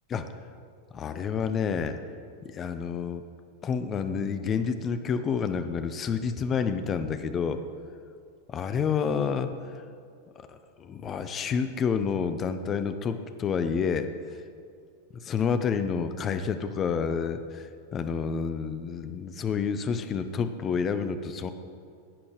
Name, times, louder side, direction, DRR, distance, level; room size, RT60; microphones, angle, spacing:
voice 1, 0.9-2.0 2.4-3.2 3.6-7.6 8.5-9.5 10.4-14.1 15.1-21.5, left 6 dB, 25° left, 10 dB, 0.6 m, -29 dB
12.0 x 8.5 x 4.9 m, 2.4 s
figure-of-eight pair, 90°, 0 cm